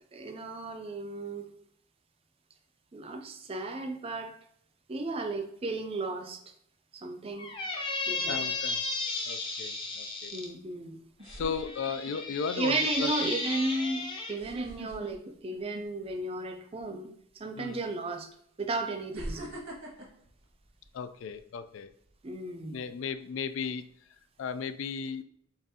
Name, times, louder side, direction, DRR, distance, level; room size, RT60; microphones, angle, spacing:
voice 1, 0.1-1.5 2.9-4.4 4.9-6.4 6.9-7.5 8.1-8.4 10.3-11.0 12.6-18.3 18.6-19.5 22.2-22.8, right 2 dB, 25° right, 0.4 m, -34 dB
Squeak, 7.4-10.5 11.3-14.4, left 3 dB, 25° left, 0.7 m, -34 dB
sound 1, 8.1-8.5 10.5-10.6 11.2-12.3 12.8-13.0 14.3-16.2 16.5-16.8 17.8-17.9 19.1-21.4 21.8-22.1, right 1 dB, 85° right, 1.4 m, -43 dB
voice 2, 8.2-8.8 9.3-10.3 11.3-13.3 17.6-17.8 20.9-21.9 22.7-23.8 24.4-25.2, left 6 dB, 65° left, 0.3 m, -36 dB
6.9 x 2.5 x 2.7 m
head